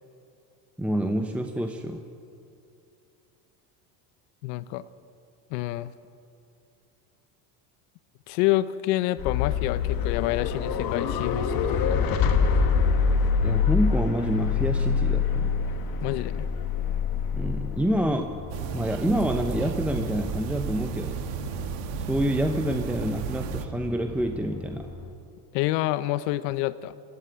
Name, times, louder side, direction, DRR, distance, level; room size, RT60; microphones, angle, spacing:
voice 1, 0.8-2.0 13.4-15.5 17.3-18.4 18.7-21.2 22.0-24.9, right 1 dB, 5° right, 5 dB, 0.9 m, -27 dB
voice 2, 4.4-4.8 5.5-5.9 8.3-12.0 16.0-16.5 25.5-26.9, left 15 dB, 75° left, 15 dB, 0.8 m, -28 dB
sound 1, 9.2-25.1, left 6 dB, 45° left, 1.8 m, -27 dB
sound 2, 18.5-23.7, right 8 dB, 75° right, 1.5 m, -33 dB
19.5 x 14.5 x 9.1 m, 2.7 s
supercardioid pair, 110°, 48 cm